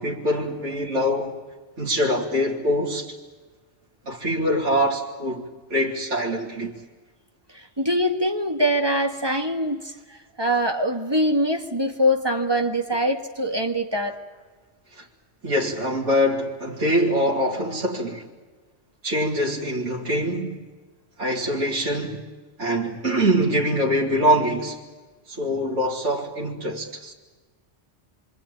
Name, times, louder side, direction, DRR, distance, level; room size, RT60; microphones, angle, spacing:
voice 1, 0.0-1.4 1.8-3.1 4.1-5.4 5.7-6.8 14.9-15.0 15.4-18.2 19.0-20.6 21.2-22.2 22.6-24.8 25.3-27.1, equal, 80° right, 3.2 m, -24 dB
voice 2, 7.5-14.2, equal, 20° right, 1.8 m, -23 dB
26.5 x 25.5 x 8.9 m
omnidirectional pair, 1.2 m